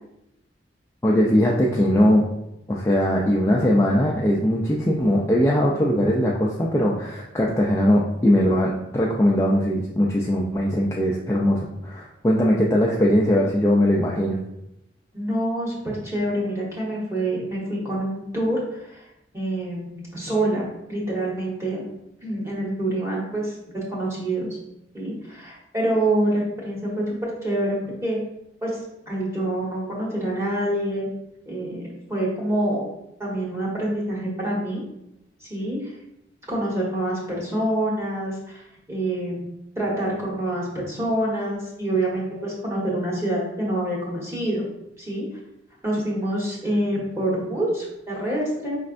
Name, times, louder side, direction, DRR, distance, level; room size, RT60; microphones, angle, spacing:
voice 1, 1.0-2.3 2.7-14.4, equal, 15° left, -3 dB, 0.3 m, -20 dB
voice 2, 15.1-19.0 19.3-21.8 22.2-24.5 24.9-28.2 28.6-28.8 29.1-31.1 31.5-31.8 32.1-32.8 33.2-34.8 35.4-35.9 36.5-38.6 38.9-39.4 39.8-44.7 45.0-45.3 45.8-48.8, right 1 dB, 15° right, -5 dB, 1.1 m, -26 dB
5.1 x 3.2 x 2.5 m, 0.86 s
head